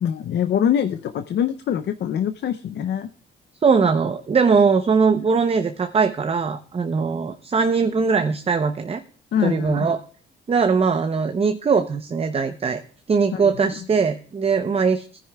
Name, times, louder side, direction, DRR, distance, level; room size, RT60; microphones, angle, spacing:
voice 1, 0.0-3.1 9.3-9.9 13.3-13.7, left 9 dB, 60° left, 10 dB, 0.6 m, -24 dB
voice 2, 3.6-9.0 9.4-10.0 10.5-12.8 13.1-15.1, right 5 dB, 30° right, 8 dB, 0.7 m, -20 dB
19.5 x 10.0 x 2.3 m, 0.43 s
cardioid pair, 90°, 20 cm